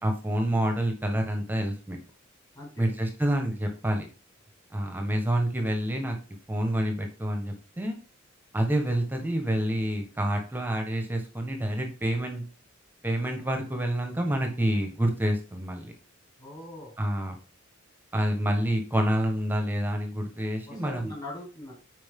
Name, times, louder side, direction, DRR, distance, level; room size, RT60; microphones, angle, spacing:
voice 1, 0.0-2.0 2.8-4.1 4.7-6.2 6.5-8.0 8.5-12.4 13.0-15.9 17.0-17.4 18.1-21.1, right 1 dB, 10° right, 4 dB, 1.4 m, -28 dB
voice 2, 2.6-2.9 16.4-16.9 20.7-21.7, left 1 dB, 20° left, -4 dB, 4.5 m, -41 dB
8.8 x 5.1 x 3.8 m, 0.34 s
head